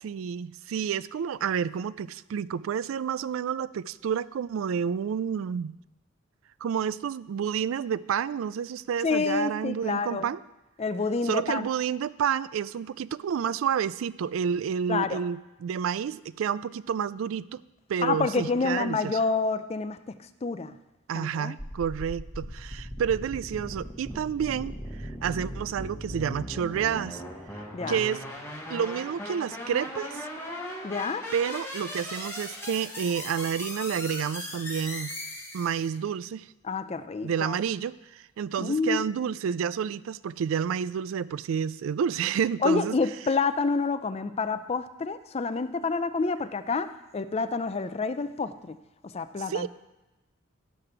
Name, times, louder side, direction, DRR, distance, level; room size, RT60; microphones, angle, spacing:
voice 1, 0.0-5.8 6.6-10.4 11.2-17.6 17.9-19.1 21.1-27.2 27.9-28.2 28.7-30.3 31.3-35.1 35.5-36.5 37.2-43.0 49.5-49.7, right 7 dB, 80° right, 18 dB, 0.3 m, -29 dB
voice 2, 9.0-10.3 10.8-11.7 14.9-15.2 18.0-20.7 21.1-21.6 27.7-28.0 30.8-31.2 36.6-37.6 38.6-39.1 42.6-48.8 49.1-49.7, left 4 dB, 30° left, 12 dB, 0.4 m, -28 dB
sound 1, 21.6-36.0, left 1 dB, 15° left, 1.2 m, -38 dB
12.5 x 4.9 x 5.9 m, 1.0 s
head